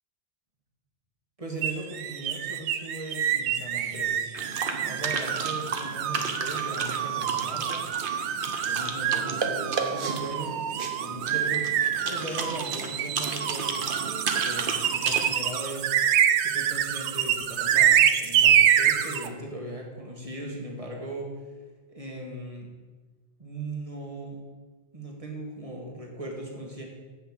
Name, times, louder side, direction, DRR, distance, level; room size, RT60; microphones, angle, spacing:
voice 1, 1.4-4.3 4.8-7.9 8.7-11.7 12.0-13.9 14.2-15.9 16.4-21.3 21.9-22.7 23.4-24.4 24.9-26.8, right 1 dB, 30° right, -1 dB, 1.7 m, -38 dB
sound 1, 1.6-19.3, right 9 dB, 80° right, 0.9 m, -26 dB
sound 2, 4.3-15.2, right 4 dB, 55° right, 1.0 m, -33 dB
8.1 x 5.7 x 7.3 m, 1.4 s
omnidirectional pair, 1.1 m